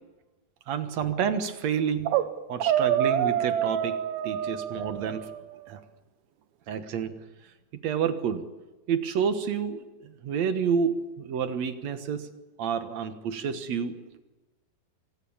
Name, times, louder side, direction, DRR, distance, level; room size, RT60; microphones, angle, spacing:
voice 1, 0.7-2.2 2.5-5.3 5.7-5.8 6.7-7.2 7.8-8.5 8.9-12.3 12.6-14.0, right 7 dB, 60° right, 9 dB, 2.1 m, -29 dB
sound 1, 1.8-2.3 2.6-5.4, right 10 dB, 75° right, 2.9 m, -26 dB
26.0 x 19.5 x 7.2 m, 1.1 s
omnidirectional pair, 4.5 m